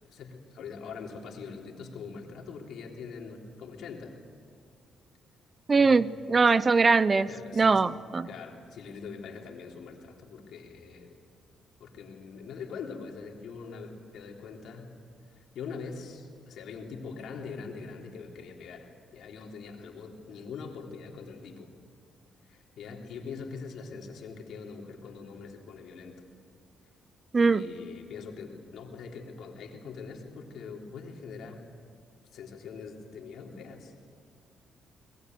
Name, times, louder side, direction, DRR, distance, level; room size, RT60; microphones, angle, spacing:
voice 1, 0.1-4.1 5.8-6.0 7.3-7.9 8.2-11.1 11.8-14.9 15.6-21.7 22.5-26.2 27.3-31.7 32.3-33.9, left 5 dB, 75° left, 1 dB, 3.5 m, -43 dB
voice 2, 5.7-8.3 27.3-27.7, right 4 dB, 30° right, 17 dB, 0.7 m, -22 dB
22.5 x 20.5 x 9.4 m, 2.2 s
cardioid pair, 90°, 0 cm